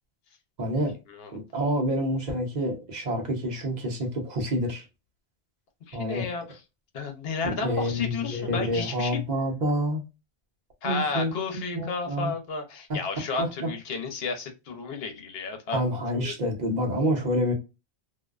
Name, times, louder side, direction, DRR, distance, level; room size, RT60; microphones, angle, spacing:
voice 1, 0.6-0.9 1.3-4.9 5.9-6.3 7.4-10.0 10.8-11.3 11.7-12.3 12.9-13.0 13.4-13.7 15.7-17.5, equal, 45° right, 0.9 m, -28 dB
voice 2, 5.9-6.4 6.9-9.2 10.8-15.8 16.2-16.3, left 4 dB, 70° left, 0.9 m, -32 dB
2.6 x 2.1 x 2.3 m
omnidirectional pair, 1.1 m